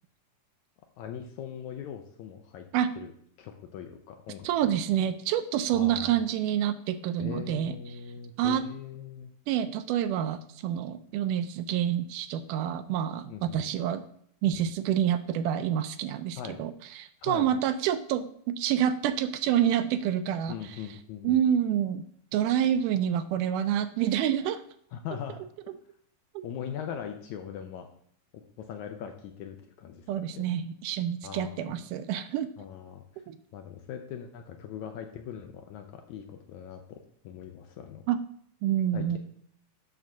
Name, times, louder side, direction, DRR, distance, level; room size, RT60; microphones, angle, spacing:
voice 1, 1.0-2.7 3.0-3.1 3.4-4.7 5.7-6.2 7.2-9.3 13.3-13.7 16.4-16.6 17.2-17.5 20.5-21.4 24.9-25.4 26.4-27.9 28.3-30.5 31.2-31.8 32.6-33.0 33.5-38.0 38.9-39.2, left 8 dB, 75° left, 5 dB, 1.8 m, -40 dB
voice 2, 4.4-7.8 8.4-8.6 9.5-14.0 14.4-20.6 21.2-22.0 22.3-24.6 26.4-26.5 30.1-32.5 33.3-33.4 38.1-38.2 38.6-39.2, right 10 dB, 80° right, 10 dB, 2.1 m, -27 dB
8.9 x 3.5 x 6.2 m, 0.63 s
omnidirectional pair, 3.8 m